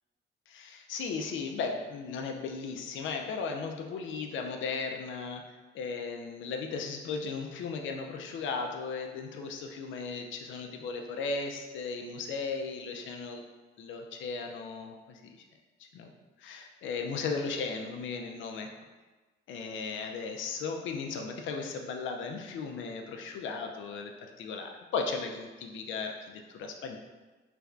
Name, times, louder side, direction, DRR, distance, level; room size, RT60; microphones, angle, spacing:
voice 1, 0.5-5.4 5.7-13.4 13.8-15.4 15.8-16.1 16.4-18.7 19.5-24.1 24.4-27.0, left 4 dB, 90° left, 3 dB, 0.4 m, -36 dB
3.3 x 3.2 x 2.4 m, 1.2 s
cardioid pair, 105°, 19 cm